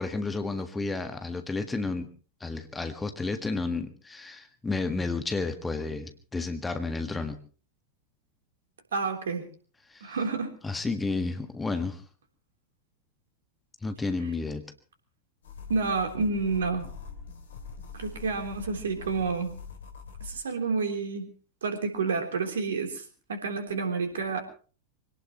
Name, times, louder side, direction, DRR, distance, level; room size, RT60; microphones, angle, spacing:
voice 1, 0.0-2.1 2.4-7.4 9.9-10.2 10.6-12.0 13.8-14.6, left 3 dB, 10° left, 7 dB, 1.6 m, -31 dB
voice 2, 8.9-9.5 10.0-10.6 15.7-16.9 17.9-19.5 20.2-21.3 21.6-23.0 23.3-24.4, right 4 dB, 65° right, 5 dB, 3.5 m, -29 dB
sound 1, 15.4-20.3, left 4 dB, 65° left, 3.0 m, -43 dB
25.0 x 18.0 x 3.0 m, 0.39 s
figure-of-eight pair, 90°, 0 cm